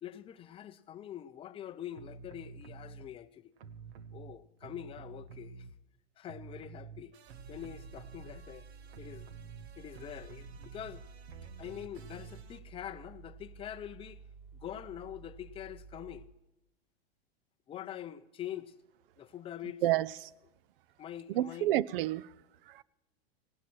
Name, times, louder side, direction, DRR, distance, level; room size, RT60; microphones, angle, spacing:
voice 1, 0.0-3.5 4.1-5.7 6.2-7.1 7.5-8.7 9.0-9.3 9.8-11.1 11.6-14.2 14.5-16.3 17.7-18.7 19.2-19.8 21.0-21.7, left 11 dB, 15° left, 0.5 m, -44 dB
sound 1, 2.0-3.1 3.6-6.0 6.2-12.6, right 5 dB, 85° right, 1.2 m, -50 dB
sound 2, 7.3-16.3, right 5 dB, 35° right, 4.6 m, -52 dB
voice 2, 19.8-20.3 21.3-22.3 22.7-22.8, right 14 dB, 60° right, 0.6 m, -30 dB
17.5 x 12.0 x 4.4 m
hypercardioid pair, 125°, 31 cm